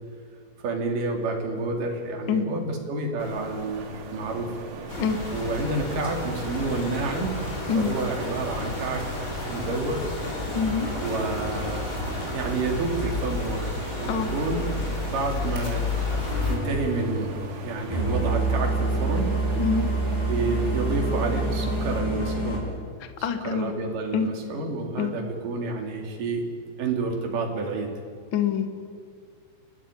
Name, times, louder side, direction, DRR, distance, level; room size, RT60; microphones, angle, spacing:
voice 1, 0.6-4.6 5.3-7.3 7.7-9.0 9.5-10.1 11.0-11.9 12.3-13.7 14.0-16.1 16.5-17.3 17.6-19.3 20.3-22.6 23.4-26.4 26.8-27.9, right 3 dB, 55° right, 2 dB, 4.2 m, -29 dB
sound 1, 3.2-22.0, right 4 dB, 90° right, 4.5 m, -41 dB
sound 2, 4.9-16.6, left 2 dB, 20° left, 4.1 m, -31 dB
voice 2, 10.5-10.9 14.1-14.3 19.6-19.8 23.0-23.7 24.1-24.3 25.0-25.1 28.3-28.7, left 6 dB, 75° left, 7 dB, 1.1 m, -25 dB
sound 3, 16.2-22.6, right 2 dB, 50° left, 9.1 m, -27 dB
30.0 x 12.5 x 10.0 m, 2.1 s
omnidirectional pair, 5.0 m